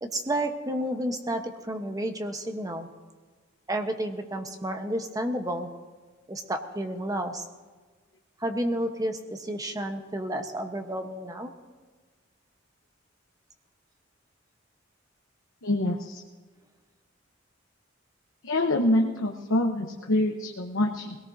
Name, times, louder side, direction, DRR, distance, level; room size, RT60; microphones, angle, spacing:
voice 1, 0.0-2.9 3.7-5.7 6.3-7.4 8.4-11.5, right 1 dB, 20° right, 6 dB, 0.9 m, -31 dB
voice 2, 15.6-16.2 18.4-21.2, left 1 dB, 75° left, 2 dB, 0.9 m, -25 dB
21.5 x 17.5 x 2.7 m, 1.4 s
head